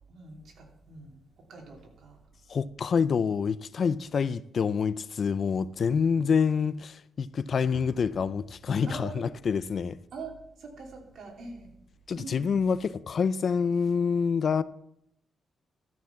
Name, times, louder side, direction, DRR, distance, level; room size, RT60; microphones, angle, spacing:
voice 1, 0.1-2.2 5.9-6.2 8.9-9.3 10.1-11.7 12.1-12.5, right 4 dB, 70° right, 3.0 m, -44 dB
voice 2, 2.5-10.0 12.1-14.6, left 6 dB, 50° left, 0.4 m, -27 dB
Explosion, 7.7-9.4, left 1 dB, 10° left, 1.5 m, -51 dB
13.0 x 5.9 x 7.2 m
wide cardioid pair, 140°, 0 cm